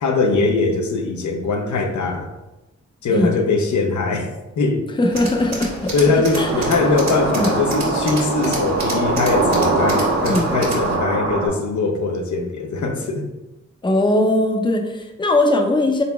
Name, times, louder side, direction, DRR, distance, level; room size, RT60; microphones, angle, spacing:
voice 1, 0.0-2.3 3.0-4.8 5.9-13.3, left 3 dB, 75° left, 3 dB, 0.7 m, -21 dB
voice 2, 5.0-5.9 6.3-6.7 7.3-7.5 10.3-10.5 13.8-16.0, left 1 dB, 15° left, 3 dB, 0.6 m, -19 dB
Tools, 5.1-11.0, right 2 dB, 60° right, 1.5 m, -31 dB
sound 1, 6.3-11.5, right 3 dB, 45° right, 0.8 m, -22 dB
4.0 x 3.9 x 2.3 m, 1.0 s
cardioid pair, 60°, 30 cm